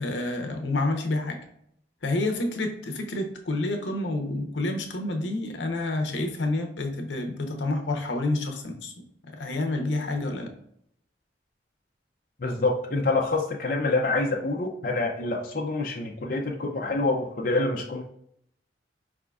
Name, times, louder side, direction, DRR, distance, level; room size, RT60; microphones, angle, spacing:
voice 1, 0.0-1.4 2.0-8.9 9.3-10.5, left 2 dB, 80° left, 4 dB, 0.8 m, -28 dB
voice 2, 12.4-18.0, left 2 dB, 50° left, -1 dB, 0.5 m, -26 dB
4.9 x 3.6 x 2.3 m, 0.70 s
head